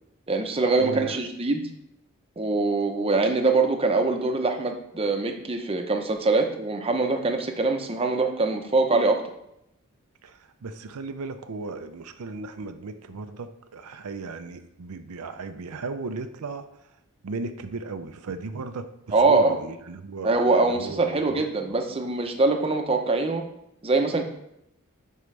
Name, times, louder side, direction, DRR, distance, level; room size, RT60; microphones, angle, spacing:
voice 1, 0.3-1.6 2.4-9.2 19.1-19.6 20.2-23.4 23.8-24.3, right 3 dB, 25° right, 4 dB, 0.7 m, -23 dB
voice 2, 0.8-1.2 10.2-16.6 17.2-21.4 21.7-22.0, right 3 dB, 90° right, 8 dB, 0.5 m, -36 dB
10.0 x 4.6 x 3.3 m, 0.80 s
head